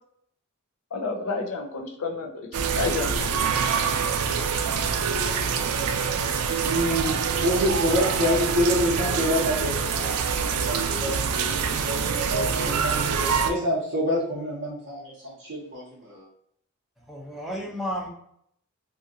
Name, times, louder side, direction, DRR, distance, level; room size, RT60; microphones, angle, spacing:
voice 1, 0.9-2.3 2.8-3.5, left 3 dB, 70° left, 1 dB, 0.6 m, -30 dB
sound 1, 2.5-13.5, right 6 dB, 85° right, 0.4 m, -25 dB
voice 2, 5.4-5.8 6.6-16.2, equal, 55° right, -5 dB, 0.7 m, -28 dB
voice 3, 17.0-18.1, equal, ahead, -3 dB, 0.6 m, -32 dB
2.8 x 2.5 x 2.7 m, 0.69 s
head